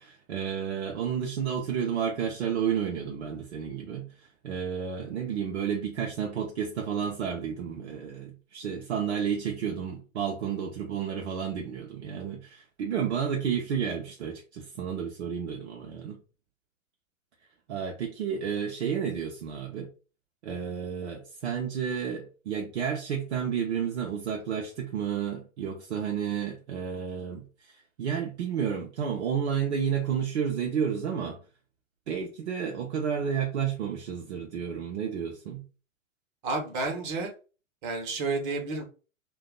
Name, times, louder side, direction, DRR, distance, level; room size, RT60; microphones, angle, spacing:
voice 1, 0.0-16.2 17.7-19.9 20.4-31.4 32.1-35.6, right 7 dB, 55° right, 0.7 m, -31 dB
voice 2, 36.4-37.3 37.8-38.8, right 3 dB, 40° right, 1.0 m, -30 dB
2.6 x 2.3 x 3.6 m
figure-of-eight pair, 105°, 40 cm